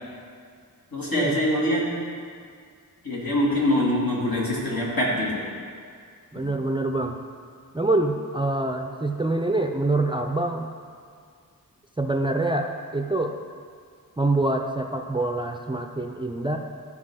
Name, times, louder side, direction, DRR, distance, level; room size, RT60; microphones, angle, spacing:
voice 1, 0.9-1.8 3.0-5.5, left 1 dB, 70° left, -6 dB, 2.4 m, -24 dB
voice 2, 6.3-7.2 7.7-10.7 12.0-13.4 14.2-16.6, right 2 dB, 15° right, 4 dB, 0.4 m, -25 dB
14.0 x 4.7 x 3.7 m, 2.1 s
wide cardioid pair, 70°, 36 cm